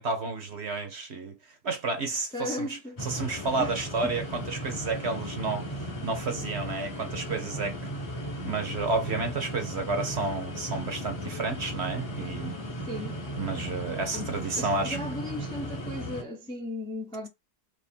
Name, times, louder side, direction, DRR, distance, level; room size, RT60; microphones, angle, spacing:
voice 1, 0.0-1.4 1.6-7.8 8.4-12.6 13.4-15.0, right 3 dB, 50° right, 1.0 m, -31 dB
voice 2, 2.3-3.0 3.6-4.1 12.9-13.2 14.1-17.3, left 1 dB, 5° left, 0.4 m, -36 dB
sound 1, 3.0-16.2, equal, 30° left, 0.8 m, -36 dB
3.6 x 3.1 x 4.3 m
omnidirectional pair, 1.7 m